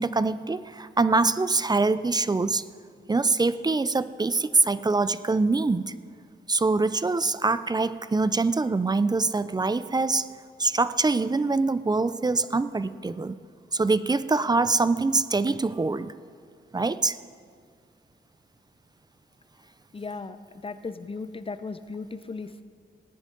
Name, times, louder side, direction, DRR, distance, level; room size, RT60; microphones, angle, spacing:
voice 1, 0.0-2.6 3.1-5.9 6.5-10.3 10.6-13.4 13.7-16.1 16.7-17.2, right 3 dB, 20° right, 14 dB, 0.4 m, -24 dB
voice 2, 19.9-20.4 20.6-22.6, left 4 dB, 25° left, 12 dB, 0.6 m, -36 dB
17.5 x 10.5 x 3.9 m, 2.1 s
cardioid pair, 75°, 21 cm